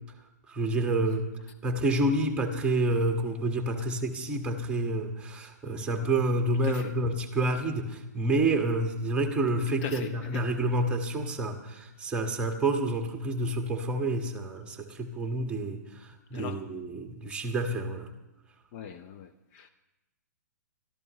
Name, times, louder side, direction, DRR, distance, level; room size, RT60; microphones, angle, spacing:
voice 1, 0.5-1.3 1.6-18.1, right 2 dB, 10° right, 3 dB, 1.8 m, -28 dB
voice 2, 9.8-10.5 16.3-16.6 18.7-19.7, left 7 dB, 40° left, 7 dB, 0.9 m, -40 dB
24.0 x 14.0 x 3.2 m, 0.96 s
hypercardioid pair, 125°, 10 cm